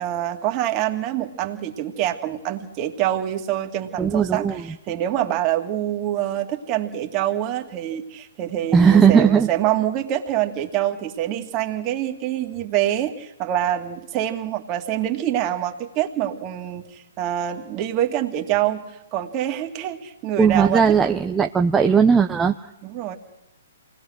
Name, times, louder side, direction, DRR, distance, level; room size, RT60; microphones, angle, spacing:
voice 1, 0.0-18.8 19.1-21.0 22.8-23.2, right 12 dB, 30° right, 4 dB, 2.5 m, -25 dB
voice 2, 4.0-4.6 8.7-9.5 20.4-22.6, right 6 dB, 10° right, 4 dB, 0.8 m, -17 dB
28.0 x 19.5 x 6.5 m, 0.99 s
figure-of-eight pair, 125°, 0 cm